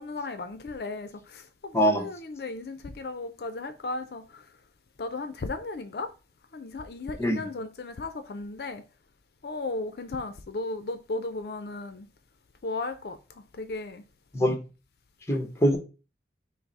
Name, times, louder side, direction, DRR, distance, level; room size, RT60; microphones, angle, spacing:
voice 1, 0.0-4.5 5.0-6.1 6.5-8.8 9.4-12.1 12.6-13.2 13.5-14.0 15.3-15.4, left 3 dB, 60° left, 0.4 m, -35 dB
voice 2, 1.7-2.0 7.2-7.5 14.3-14.6 15.3-15.8, equal, 15° left, 0.8 m, -23 dB
5.8 x 2.0 x 4.0 m
head